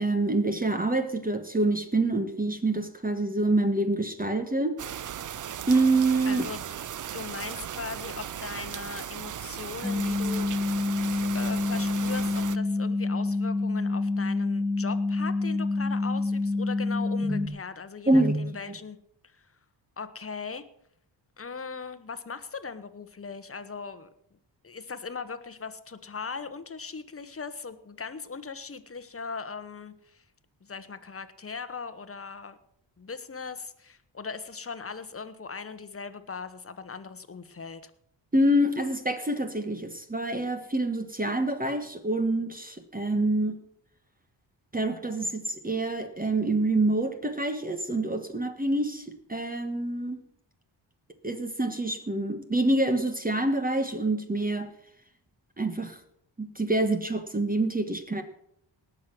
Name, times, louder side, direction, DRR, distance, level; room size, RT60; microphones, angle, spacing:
voice 1, 0.0-4.8 5.7-6.4 17.2-17.5 18.1-18.5 38.3-43.6 44.7-49.0 49.3-50.2 51.2-54.7 55.6-56.0 56.4-58.2, right 2 dB, 20° right, 7 dB, 1.3 m, -26 dB
sound 1, 4.8-12.6, right 9 dB, 45° right, 0.5 m, -37 dB
voice 2, 6.2-6.7 7.1-19.0 19.2-19.5 20.0-20.6 21.4-24.1 24.6-30.2 30.6-32.6 33.0-37.9, left 5 dB, 30° left, 10 dB, 1.1 m, -39 dB
sound 2, 9.8-17.5, left 3 dB, 5° left, 1.2 m, -27 dB
19.0 x 6.5 x 6.1 m, 0.72 s
cardioid pair, 90°, 46 cm